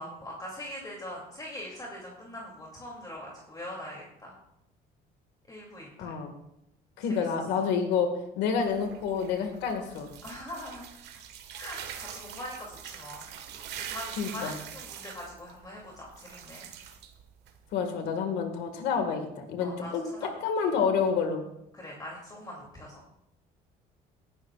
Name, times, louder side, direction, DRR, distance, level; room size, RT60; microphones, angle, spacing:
voice 1, 0.0-4.3 5.5-6.1 7.0-7.2 7.6-7.7 10.2-10.9 11.6-13.3 13.8-16.6 19.6-19.9 20.2-20.3 20.6-20.7 21.7-23.0, left 1 dB, 20° left, -2 dB, 2.7 m, -42 dB
voice 2, 6.0-6.3 7.0-10.1 14.2-14.6 17.7-20.0 20.4-21.5, left 6 dB, 85° left, 5 dB, 1.9 m, -28 dB
sound 1, 8.6-17.7, right 9 dB, 80° right, 1.6 m, -44 dB
19.0 x 11.0 x 2.4 m, 0.81 s
cardioid pair, 110°, 17 cm